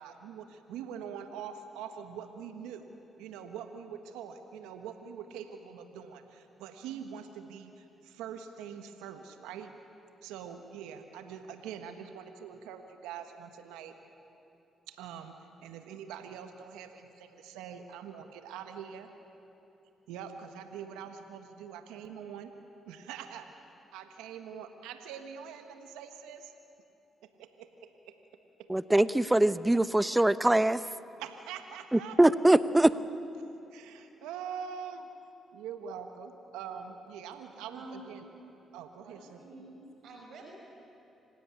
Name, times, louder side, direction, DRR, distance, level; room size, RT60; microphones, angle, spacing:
voice 1, 0.0-2.9 3.2-9.7 10.2-13.9 14.9-19.1 20.1-22.5 22.9-23.5 23.9-26.5 27.4-28.2 31.2-32.2 33.7-35.1 35.5-38.3 38.7-39.7, right 8 dB, 85° right, 7 dB, 1.4 m, -44 dB
voice 2, 28.7-30.8 31.9-32.9, right 1 dB, 15° right, 15 dB, 0.8 m, -23 dB
voice 3, 37.6-38.1 39.0-40.4, right 2 dB, 70° right, -1 dB, 6.0 m, -49 dB
26.0 x 16.5 x 9.7 m, 3.0 s
supercardioid pair, 55°, 0 cm